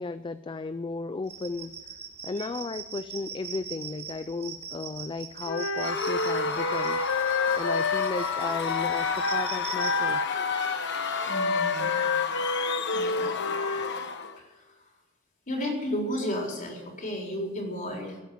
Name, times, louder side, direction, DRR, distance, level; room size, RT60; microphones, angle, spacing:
voice 1, 0.0-7.0 7.5-10.2, left 3 dB, 25° left, 13 dB, 0.4 m, -35 dB
sound 1, 1.3-9.9, right 7 dB, 50° right, 2.6 m, -42 dB
Wind instrument woodwind instrument, 5.4-9.5 9.7-13.9, left 4 dB, 75° left, 1.1 m, -29 dB
Screaming / Cheering / Crowd, 5.8-14.4, left 5 dB, 60° left, 1.2 m, -32 dB
voice 2, 11.2-11.9 12.9-13.4 14.4-14.9 15.5-18.2, equal, 40° left, 0 dB, 4.1 m, -33 dB
18.0 x 8.8 x 7.6 m, 1.2 s
head